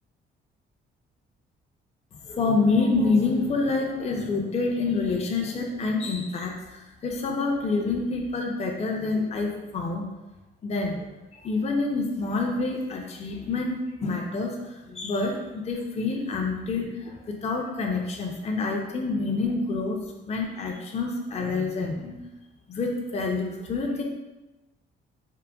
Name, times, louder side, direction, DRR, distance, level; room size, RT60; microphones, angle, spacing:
voice 1, 2.3-6.5 7.0-10.1 10.6-11.1 11.4-14.6 14.9-20.0 20.2-22.2 22.7-24.0, left 3 dB, 35° left, 1 dB, 0.5 m, -27 dB
3.8 x 2.0 x 2.2 m, 1.1 s
cardioid pair, 90°, 20 cm